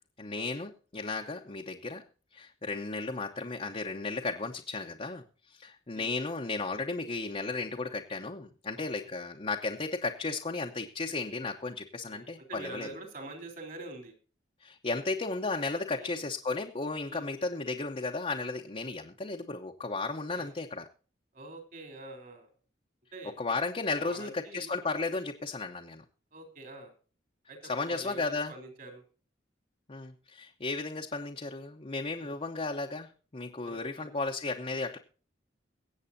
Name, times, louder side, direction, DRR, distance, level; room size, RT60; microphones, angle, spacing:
voice 1, 0.2-2.0 2.3-12.9 14.6-20.8 23.4-26.0 27.7-28.5 29.9-35.0, left 3 dB, 35° left, 2 dB, 0.9 m, -34 dB
voice 2, 8.7-9.1 11.1-11.3 12.0-14.1 16.0-16.2 17.1-17.3 20.3-20.6 21.3-22.5 23.1-23.7 24.0-24.7 26.3-26.9 27.5-29.0 32.2-32.3 33.6-34.1, right 2 dB, 50° right, 6 dB, 3.5 m, -46 dB
23.0 x 8.1 x 2.7 m, 0.38 s
head